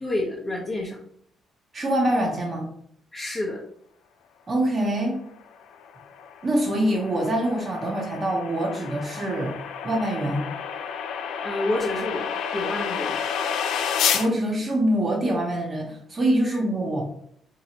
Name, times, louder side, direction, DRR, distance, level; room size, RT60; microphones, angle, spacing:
voice 1, 0.0-1.0 3.1-3.6 11.4-13.2 16.4-16.6, left 1 dB, 30° left, -6 dB, 0.8 m, -29 dB
voice 2, 1.7-2.7 4.5-5.2 6.4-9.6 9.8-10.4 14.1-17.0, right 1 dB, 35° right, 0 dB, 0.7 m, -24 dB
sound 1, 5.6-14.3, left 7 dB, 85° left, 0.3 m, -30 dB
3.0 x 2.8 x 2.8 m, 0.67 s
cardioid pair, 90°, 0 cm